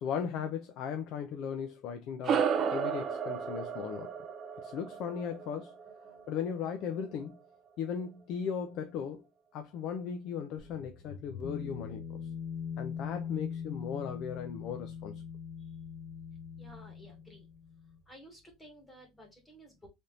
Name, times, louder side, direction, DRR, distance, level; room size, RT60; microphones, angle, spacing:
voice 1, 0.0-4.1 4.6-5.7 6.3-7.4 7.8-9.2 9.5-12.0 12.8-15.2, left 7 dB, 45° left, 0.5 m, -37 dB
sound 1, 2.2-7.0, right 7 dB, 30° right, 0.4 m, -34 dB
sound 2, 10.6-18.0, left 7 dB, 30° left, 0.8 m, -42 dB
voice 2, 12.5-12.8 15.6-15.8 16.6-17.5 18.0-19.9, equal, 10° left, 1.3 m, -55 dB
3.5 x 2.8 x 3.6 m
cardioid pair, 175°, 0 cm